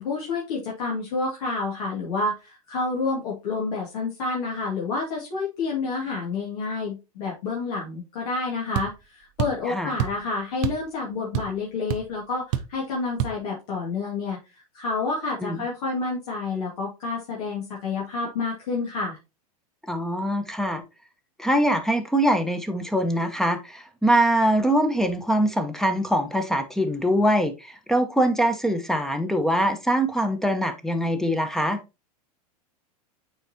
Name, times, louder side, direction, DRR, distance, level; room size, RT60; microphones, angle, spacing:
voice 1, 0.0-14.4 14.7-19.2, left 3 dB, 70° left, 2.2 m, -29 dB
sound 1, 8.7-8.9 9.4-9.6 10.0-10.2 10.6-10.9 11.1-11.6 11.9-12.0 12.5-12.8 13.2-13.4, right 11 dB, 55° right, 0.7 m, -27 dB
voice 2, 19.9-20.8 21.4-31.8, right 1 dB, ahead, 1.0 m, -23 dB
9.0 x 4.1 x 2.8 m
hypercardioid pair, 105°, 20 cm